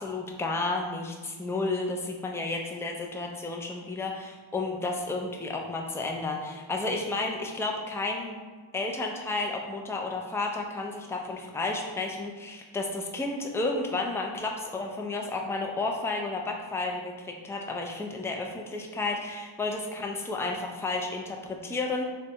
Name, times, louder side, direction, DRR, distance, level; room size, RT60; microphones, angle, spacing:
voice 1, 0.0-8.4 8.7-22.1, left 3 dB, 5° left, 0 dB, 0.3 m, -32 dB
4.0 x 2.2 x 2.7 m, 1.4 s
wide cardioid pair, 60°, 48 cm